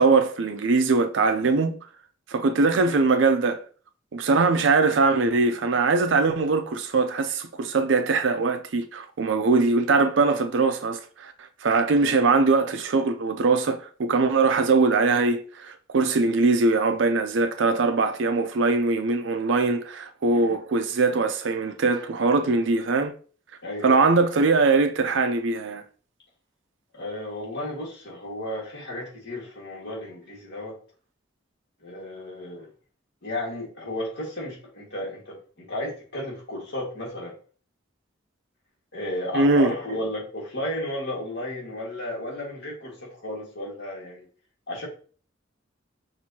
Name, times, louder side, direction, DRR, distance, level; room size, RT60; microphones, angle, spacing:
voice 1, 0.0-1.8 2.3-3.6 4.1-11.3 11.6-23.1 23.8-25.8 39.3-39.7, right 3 dB, 75° right, 0.5 m, -21 dB
voice 2, 23.6-24.1 26.9-30.8 31.8-32.7 33.2-37.3 38.9-44.3 44.7-44.9, left 1 dB, 65° left, 1.9 m, -33 dB
6.0 x 2.7 x 2.8 m
head